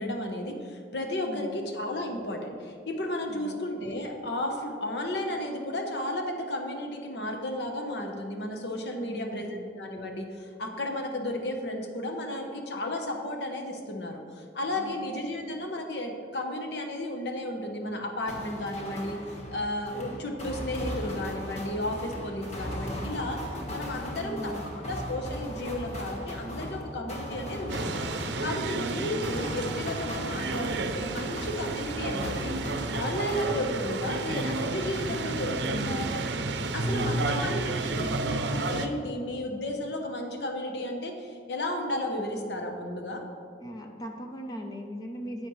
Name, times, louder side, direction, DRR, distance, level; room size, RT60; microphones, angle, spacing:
voice 1, 0.0-19.2 19.5-23.4 23.7-28.0 28.4-32.5 32.9-36.1 36.7-43.2, left 1 dB, 75° left, 3 dB, 0.9 m, -33 dB
voice 2, 1.3-1.7 3.3-3.6 9.0-9.7 14.8-15.0 24.2-24.8 29.0-29.1 36.8-37.5 43.6-45.5, equal, 20° left, 2 dB, 0.6 m, -39 dB
sound 1, 18.3-34.0 34.4-35.7, left 1 dB, 40° left, 1.4 m, -38 dB
sound 2, 27.7-38.9, right 3 dB, 80° right, 0.6 m, -31 dB
10.0 x 8.4 x 3.1 m, 2.3 s
head